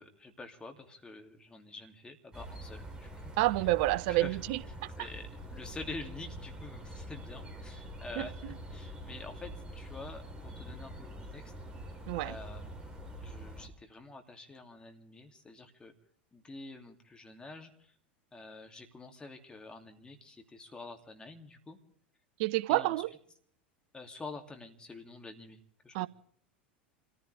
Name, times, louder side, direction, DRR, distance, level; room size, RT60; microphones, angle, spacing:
voice 1, 0.0-3.3 3.9-4.4 5.0-11.5 12.2-12.7 13.2-15.9 16.3-17.9 18.3-21.8 22.7-23.0 23.9-26.1, left 3 dB, 15° left, 2.7 m, -47 dB
sound 1, 2.3-13.7, right 1 dB, 15° right, 3.9 m, -45 dB
voice 2, 3.4-4.9 8.2-8.3 12.1-12.4 22.4-23.1 25.9-26.1, right 18 dB, 55° right, 0.6 m, -29 dB
28.0 x 15.0 x 3.4 m
figure-of-eight pair, 85°, 6 cm